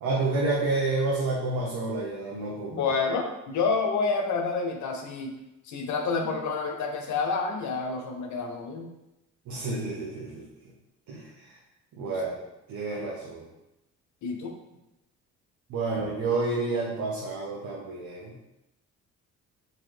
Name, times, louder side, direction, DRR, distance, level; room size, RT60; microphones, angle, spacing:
voice 1, 0.0-2.8 9.5-10.4 11.1-11.6 11.9-12.4 12.7-13.4 15.7-18.4, right 3 dB, 75° right, -4 dB, 0.8 m, -29 dB
voice 2, 2.7-5.3 5.7-8.9 14.2-14.5, left 4 dB, 70° left, 3 dB, 0.7 m, -28 dB
3.8 x 2.9 x 3.2 m, 0.92 s
cardioid pair, 90°, 30 cm